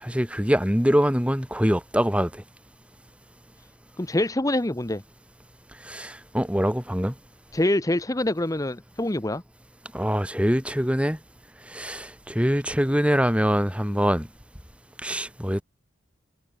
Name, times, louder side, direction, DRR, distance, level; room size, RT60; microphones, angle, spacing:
voice 1, 0.0-2.4 5.8-7.1 9.9-11.2 11.7-14.3 15.0-15.6, equal, 5° right, 3.6 m, -24 dB
voice 2, 4.0-5.0 7.5-9.4, left 1 dB, 15° left, 0.9 m, -25 dB
head